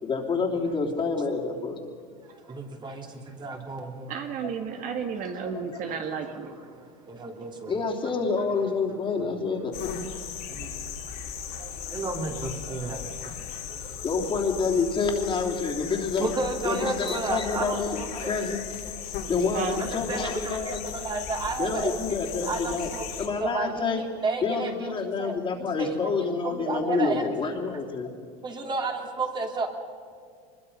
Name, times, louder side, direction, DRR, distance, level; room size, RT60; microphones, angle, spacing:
voice 1, 0.0-1.8 7.7-9.8 14.0-16.3 16.6-19.0 19.3-20.8 21.6-22.9 23.2-24.0 24.4-28.1, left 4 dB, 25° left, 1 dB, 3.2 m, -28 dB
voice 2, 2.3-4.1 6.7-7.8 9.2-9.3 10.5-14.0 16.2-18.4 19.2-19.3 19.8-25.3 25.7-26.1 26.4-27.6 28.4-29.7, right 3 dB, 25° right, 3 dB, 2.9 m, -33 dB
voice 3, 4.1-6.6 7.4-7.5 11.5-11.9 13.7-14.0 19.5-19.8, right 6 dB, 45° right, 5 dB, 1.9 m, -33 dB
sound 1, 9.7-23.3, left 8 dB, 50° left, 3.1 m, -37 dB
24.0 x 22.0 x 5.5 m, 2.1 s
supercardioid pair, 120°, 19 cm